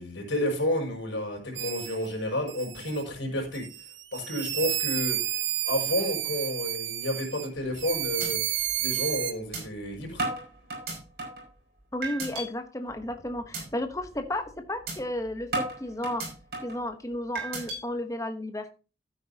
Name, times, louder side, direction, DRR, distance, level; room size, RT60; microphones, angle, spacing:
voice 1, 0.0-3.7 4.1-10.3, left 1 dB, 85° left, 1 dB, 5.6 m, -31 dB
sound 1, 1.6-2.1 2.5-3.0 3.5-7.5 7.8-9.3, right 12 dB, 85° right, 0.9 m, -31 dB
sound 2, 7.5-7.8 8.2-8.3 8.7-8.8 9.5-9.6 10.2-11.5 12.0-12.5 12.9-13.1 13.5-13.6 14.0-14.2 14.9-15.0 15.5-16.8 17.4-17.8, right 2 dB, 55° right, 5.8 m, -33 dB
voice 2, 11.9-16.2 16.6-18.7, left 1 dB, 15° left, 7 dB, 1.0 m, -33 dB
12.5 x 9.3 x 2.8 m, 0.33 s
head